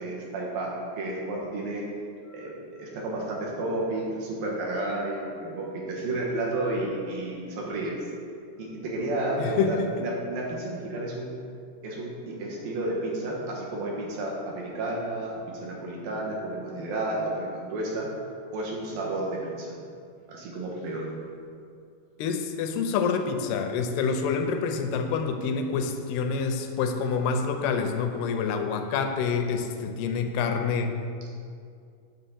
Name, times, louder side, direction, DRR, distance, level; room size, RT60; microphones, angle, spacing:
voice 1, 0.0-1.8 2.2-8.1 8.6-11.3 11.8-18.1 18.5-19.8 20.3-21.1, right 2 dB, 65° right, -3 dB, 2.7 m, -31 dB
voice 2, 9.4-10.0 22.2-30.9, left 5 dB, 80° left, 6 dB, 2.5 m, -27 dB
9.2 x 3.8 x 7.0 m, 2.4 s
omnidirectional pair, 4.8 m